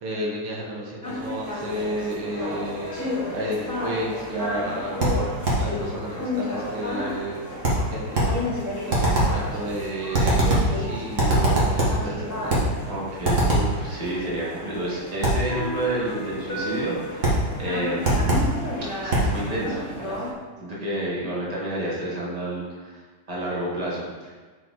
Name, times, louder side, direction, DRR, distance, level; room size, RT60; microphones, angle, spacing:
voice 1, 0.0-5.0 5.6-7.4 7.9-8.3 8.8-12.7, right 1 dB, 85° right, -2 dB, 2.2 m, -32 dB
sound 1, 1.0-20.3, left 1 dB, 10° left, 1.2 m, -32 dB
sound 2, 5.0-5.7 7.6-8.4 8.9-9.4 10.1-10.8 11.2-12.0 12.5-12.8 13.2-13.8 15.2-15.5 17.2-17.5 18.0-18.6 19.1-19.4, right 1 dB, 35° right, 1.8 m, -21 dB
voice 2, 12.8-18.4 19.0-20.2 20.6-23.0 23.3-24.3, right 1 dB, 20° right, -6 dB, 1.8 m, -30 dB
8.2 x 4.8 x 4.1 m, 1.4 s
omnidirectional pair, 2.4 m